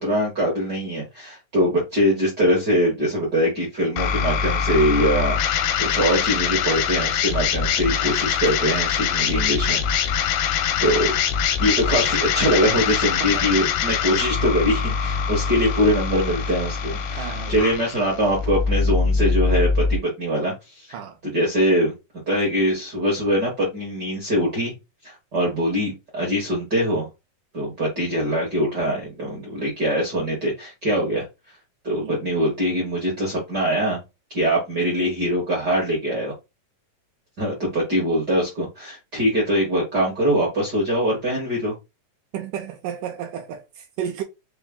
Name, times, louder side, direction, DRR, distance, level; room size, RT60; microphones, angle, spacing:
voice 1, 0.0-5.4 5.8-10.3 10.8-11.1 11.6-21.0 21.2-21.9 22.3-24.7 25.0-27.1 27.5-31.2 31.8-34.0 34.3-36.3 37.4-41.7, equal, 60° right, 1.0 m, -23 dB
sound 1, 4.0-20.0, left 7 dB, 85° left, 2.2 m, -23 dB
voice 2, 17.2-17.6 20.9-21.2 31.9-32.2 42.3-44.2, right 9 dB, 80° right, 2.0 m, -32 dB
5.4 x 2.1 x 3.6 m
omnidirectional pair, 4.0 m